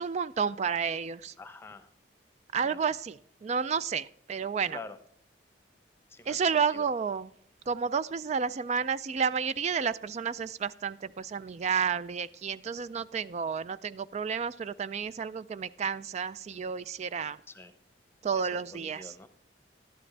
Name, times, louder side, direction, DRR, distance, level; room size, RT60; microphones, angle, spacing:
voice 1, 0.0-1.3 2.5-4.8 6.3-7.3 7.7-17.4 18.2-19.2, right 6 dB, 40° right, 16 dB, 0.3 m, -31 dB
voice 2, 1.4-1.9 2.6-2.8 4.7-5.0 6.1-6.4 6.7-6.8 17.5-17.7 18.3-19.3, left 3 dB, 15° left, 10 dB, 0.9 m, -46 dB
12.0 x 11.0 x 3.3 m, 0.68 s
head